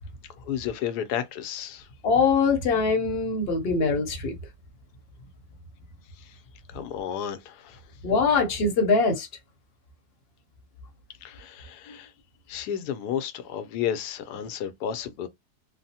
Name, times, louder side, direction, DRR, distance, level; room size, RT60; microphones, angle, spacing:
voice 1, 0.3-1.9 6.2-6.4 6.7-7.8 11.2-12.1 12.5-15.3, left 9 dB, 85° left, 1.1 m, -32 dB
voice 2, 2.0-4.4 8.0-9.3, left 4 dB, 50° left, 0.8 m, -23 dB
3.4 x 2.0 x 2.7 m
omnidirectional pair, 1.7 m